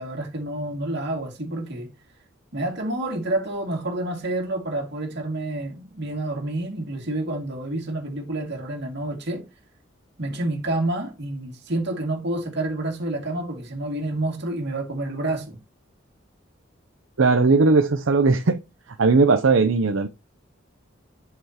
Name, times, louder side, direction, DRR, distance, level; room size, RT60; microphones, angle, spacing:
voice 1, 0.0-1.9 2.5-9.5 10.2-15.6, right 2 dB, 60° right, 2.4 m, -28 dB
voice 2, 17.2-18.6 18.9-20.1, right 3 dB, 75° right, 0.7 m, -18 dB
8.0 x 6.8 x 2.9 m
head